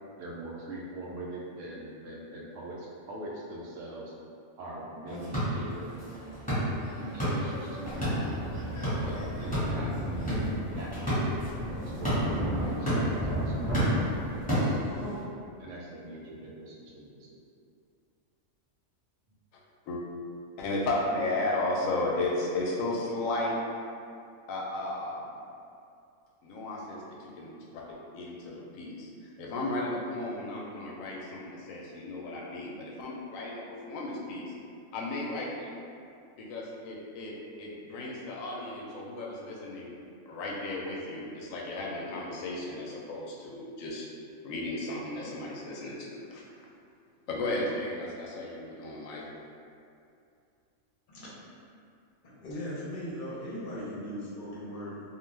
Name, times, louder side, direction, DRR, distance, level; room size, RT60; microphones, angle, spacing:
voice 1, 0.2-4.1 4.6-5.9 6.9-8.3 8.9-11.5 11.9-13.0 13.2-13.6 13.9-14.4 14.7-14.8 15.6-17.4, right 1 dB, 75° right, -4 dB, 0.9 m, -42 dB
sound 1, 5.1-15.2, equal, 5° left, 1.1 m, -32 dB
sound 2, 7.8-14.3, right 1 dB, 15° right, 0.6 m, -34 dB
voice 2, 20.6-23.6 24.5-25.3 26.4-27.8 28.1-29.1 29.4-34.5 34.9-35.7 36.4-39.9 40.3-44.1 44.4-46.4 47.3-49.2, left 2 dB, 90° left, -3 dB, 1.0 m, -34 dB
voice 3, 51.1-51.5 52.2-55.0, equal, 50° left, -7 dB, 0.8 m, -38 dB
2.4 x 2.3 x 3.2 m, 2.5 s
omnidirectional pair, 1.3 m